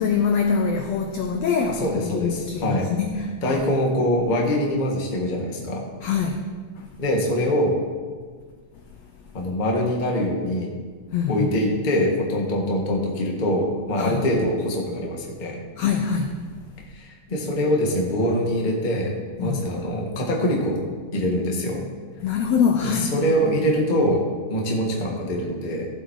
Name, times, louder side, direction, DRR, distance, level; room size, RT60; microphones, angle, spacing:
voice 1, 0.0-3.6 6.0-6.4 6.8-6.9 11.1-11.5 14.0-14.2 15.8-16.4 19.4-19.6 22.2-23.2, left 6 dB, 80° left, 4 dB, 1.5 m, -24 dB
voice 2, 1.7-2.9 3.4-5.8 7.0-7.8 9.3-10.7 11.3-15.6 16.9-20.8 21.1-21.8 22.8-25.9, equal, 30° left, -1 dB, 0.8 m, -24 dB
14.5 x 7.8 x 4.7 m, 1.5 s
omnidirectional pair, 3.9 m